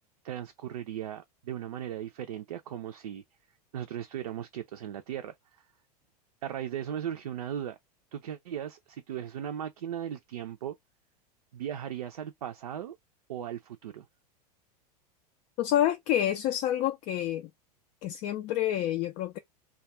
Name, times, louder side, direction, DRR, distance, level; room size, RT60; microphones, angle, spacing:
voice 1, 0.2-3.2 3.7-5.3 6.4-7.8 8.1-10.8 11.5-13.0 13.3-14.1, right 10 dB, 65° right, 0.5 m, -37 dB
voice 2, 15.6-17.5 18.0-19.4, left 11 dB, 35° left, 0.4 m, -28 dB
2.3 x 2.2 x 2.8 m
figure-of-eight pair, 85°, 21 cm